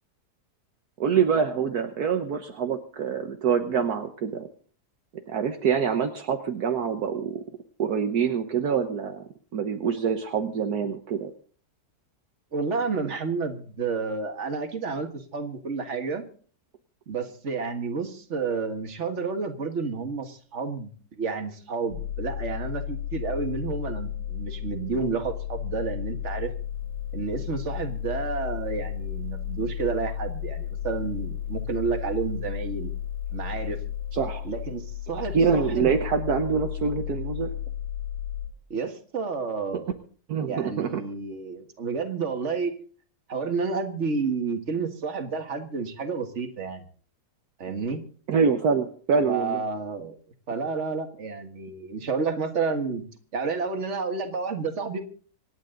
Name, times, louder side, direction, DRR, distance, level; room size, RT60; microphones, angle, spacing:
voice 1, 1.0-4.5 5.3-7.4 7.8-11.3 34.1-34.4 35.3-37.5 40.3-41.0 48.3-49.6, right 6 dB, 65° right, 5 dB, 1.5 m, -25 dB
voice 2, 12.5-16.2 17.1-26.5 27.1-32.9 33.3-33.8 34.4-35.9 38.7-39.9 40.5-42.7 43.3-46.8 47.6-48.0 49.2-50.1 50.5-53.0 53.3-55.0, right 4 dB, 45° right, 6 dB, 1.9 m, -30 dB
sound 1, 21.9-38.5, left 10 dB, 70° left, 2.6 m, -33 dB
26.0 x 9.6 x 3.9 m, 0.44 s
omnidirectional pair, 1.8 m